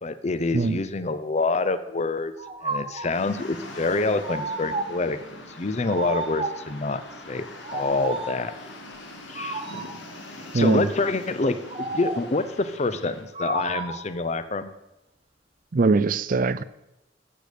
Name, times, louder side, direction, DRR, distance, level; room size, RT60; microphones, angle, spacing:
voice 1, 0.0-2.3 2.6-5.2 5.5-7.0 7.3-7.5 7.7-8.5 9.3-9.7 10.5-14.7, left 3 dB, 35° left, 0.6 m, -26 dB
sound 1, 2.4-3.2 4.2-5.1 5.8-6.7 7.6-8.5 9.3-10.1 11.7-12.4 13.3-14.1, right 2 dB, 30° right, 1.1 m, -32 dB
sound 2, 3.1-13.2, left 1 dB, 75° left, 2.0 m, -42 dB
voice 2, 10.5-10.9 15.7-16.6, right 4 dB, 45° right, 0.5 m, -21 dB
13.0 x 8.4 x 5.1 m
head